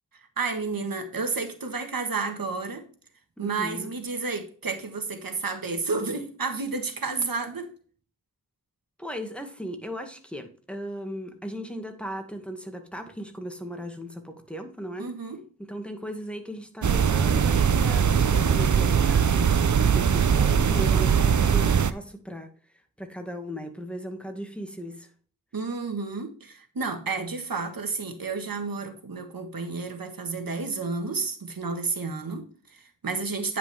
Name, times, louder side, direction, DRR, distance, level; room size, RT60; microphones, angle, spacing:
voice 1, 0.1-2.8 3.4-7.7 15.0-15.4 25.5-33.6, right 4 dB, 80° right, 6 dB, 1.6 m, -31 dB
voice 2, 3.4-4.0 9.0-15.1 15.7-19.6 19.9-22.5 23.0-25.1, equal, 5° left, 4 dB, 1.9 m, -37 dB
sound 1, 16.8-21.9, right 7 dB, 60° right, 0.7 m, -21 dB
9.7 x 5.8 x 3.4 m, 0.41 s
wide cardioid pair, 55°, 34 cm